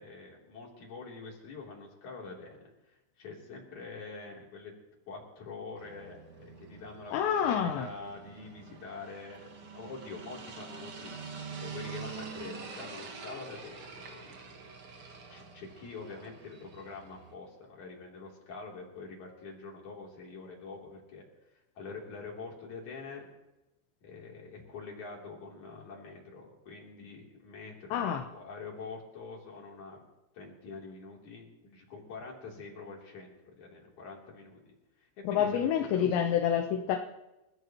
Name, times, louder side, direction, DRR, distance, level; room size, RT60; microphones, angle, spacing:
voice 1, 0.0-2.6 2.9-4.7 5.1-14.4 15.3-21.2 21.8-23.3 24.0-30.0 30.3-36.3, left 4 dB, 45° left, -2 dB, 4.4 m, -45 dB
sound 1, 5.8-17.3, right 5 dB, 85° right, 1.1 m, -46 dB
voice 2, 7.1-7.9 27.9-28.2 35.2-37.0, left 8 dB, 75° left, 4 dB, 3.0 m, -28 dB
29.5 x 14.5 x 3.1 m, 1.0 s
omnidirectional pair, 5.3 m